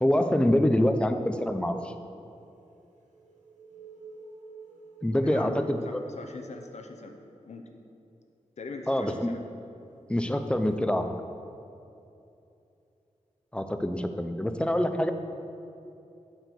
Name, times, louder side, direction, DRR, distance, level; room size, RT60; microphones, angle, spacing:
voice 1, 0.0-1.9 5.0-6.0 8.9-9.3 10.1-11.1 13.5-15.1, left 1 dB, 10° left, 7 dB, 0.4 m, -25 dB
sound 1, 2.6-7.4 10.6-10.8, right 2 dB, 75° right, 1.2 m, -48 dB
voice 2, 5.2-7.1 7.4-7.7 8.6-9.4, left 3 dB, 65° left, 4 dB, 0.7 m, -40 dB
7.6 x 4.6 x 6.8 m, 2.7 s
wide cardioid pair, 110°, 13 cm